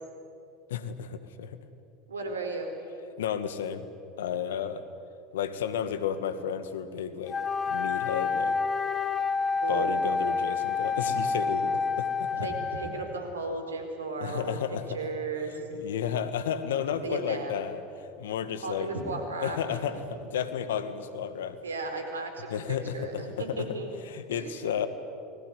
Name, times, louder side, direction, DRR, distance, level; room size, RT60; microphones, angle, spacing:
voice 1, 0.7-1.6 3.2-3.9 4.2-4.8 5.3-7.4 7.6-8.6 9.7-12.5 14.2-15.0 15.7-17.8 18.2-18.9 19.4-21.6 22.5-23.7 24.1-24.9, left 8 dB, 75° left, 11 dB, 1.8 m, -32 dB
voice 2, 2.1-2.7 9.6-10.0 12.4-14.5 14.9-15.7 17.0-17.6 18.6-19.8 21.6-23.9 24.3-24.7, right 3 dB, 85° right, 5 dB, 4.3 m, -35 dB
Wind instrument woodwind instrument, 7.3-13.2, left 5 dB, 25° left, 2.0 m, -28 dB
29.5 x 21.0 x 9.5 m, 2.6 s
hypercardioid pair, 80°, 0 cm